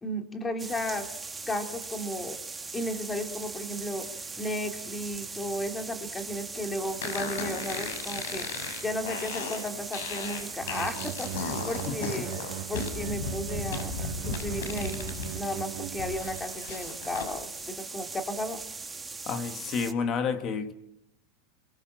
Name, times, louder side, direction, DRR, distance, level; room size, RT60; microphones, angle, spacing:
voice 1, 0.0-1.1 1.5-2.4 2.7-4.1 4.4-8.5 8.8-12.3 12.7-13.9 14.2-18.6, left 1 dB, 10° left, 2.6 m, -34 dB
sound 1, 0.6-19.9, right 4 dB, 10° right, 1.4 m, -40 dB
sound 2, 7.0-15.3 15.7-17.3, left 5 dB, 90° left, 6.8 m, -36 dB
sound 3, 10.6-16.5, right 15 dB, 60° right, 2.6 m, -39 dB
voice 2, 19.3-20.7, left 5 dB, 30° left, 1.9 m, -30 dB
29.5 x 23.0 x 6.4 m
supercardioid pair, 165°, 0 cm